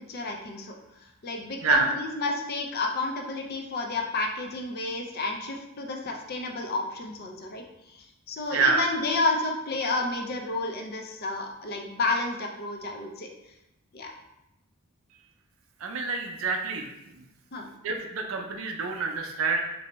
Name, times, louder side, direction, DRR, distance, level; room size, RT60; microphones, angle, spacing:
voice 1, 0.1-0.7 1.2-7.6 7.9-13.3 13.9-14.1 17.5-17.7, left 2 dB, 45° left, 3 dB, 0.4 m, -30 dB
voice 2, 8.5-8.8 15.8-17.2 17.8-19.6, right 4 dB, 70° right, 3 dB, 0.5 m, -27 dB
3.2 x 2.7 x 3.0 m, 0.90 s
head